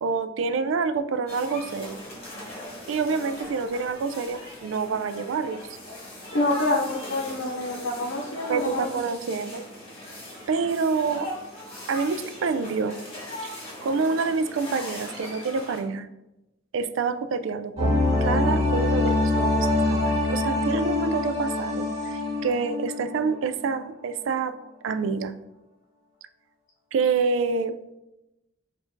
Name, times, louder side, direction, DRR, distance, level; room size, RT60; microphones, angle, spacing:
voice 1, 0.0-2.0 2.9-5.6 8.5-9.6 10.5-11.3 11.9-13.0 13.4-13.5 13.8-16.1 16.7-24.6 24.8-25.4 26.9-27.7, right 4 dB, 70° right, 11 dB, 0.3 m, -27 dB
sound 1, 1.3-15.8, left 1 dB, 30° left, 1.3 m, -40 dB
voice 2, 6.3-8.9, left 2 dB, 70° left, -2 dB, 0.7 m, -26 dB
sound 2, 17.8-23.4 23.7-23.8, left 2 dB, 30° right, 1.6 m, -24 dB
4.3 x 2.5 x 4.5 m, 0.93 s
head